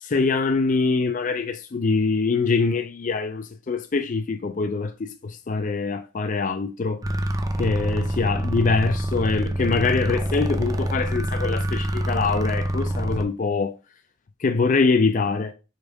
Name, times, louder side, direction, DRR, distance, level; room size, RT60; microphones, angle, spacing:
voice 1, 0.0-7.0 7.6-13.7 14.4-15.5, left 4 dB, 35° left, 0.4 m, -24 dB
sound 1, 7.0-13.3, right 1 dB, 15° right, 0.5 m, -26 dB
5.2 x 3.5 x 5.1 m
head